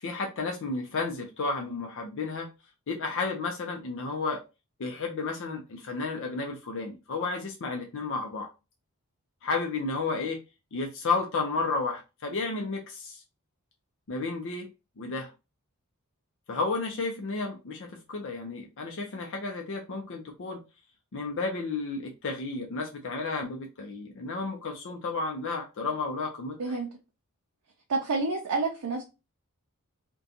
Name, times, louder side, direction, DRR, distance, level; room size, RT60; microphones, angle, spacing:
voice 1, 0.0-2.5 2.9-4.4 4.8-8.5 9.4-10.4 10.7-13.2 14.1-14.7 15.0-15.3 16.5-20.6 21.1-26.8, left 3 dB, 60° left, 0.5 m, -32 dB
voice 2, 26.6-26.9 27.9-29.0, right 3 dB, 80° right, 0.5 m, -29 dB
2.5 x 2.2 x 2.6 m
head